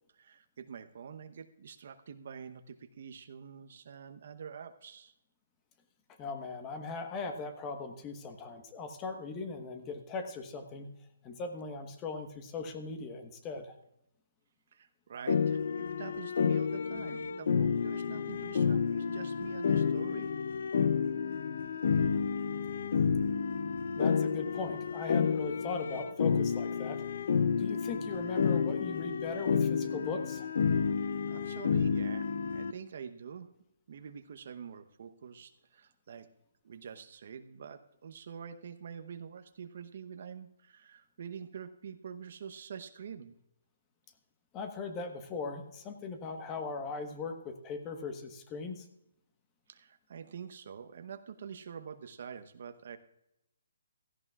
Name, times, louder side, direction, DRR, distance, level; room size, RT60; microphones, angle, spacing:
voice 1, 0.1-5.1 14.7-20.3 31.0-33.5 33.9-36.3 36.6-43.4 49.7-53.0, right 7 dB, 55° right, 9 dB, 0.9 m, -46 dB
voice 2, 6.2-10.9 11.2-13.7 23.9-27.0 27.6-30.5 44.5-48.8, left 4 dB, 20° left, 6 dB, 1.2 m, -39 dB
sound 1, 15.3-32.7, left 6 dB, 60° left, 0.6 m, -30 dB
16.0 x 14.5 x 2.4 m, 0.83 s
hypercardioid pair, 150°, 0 cm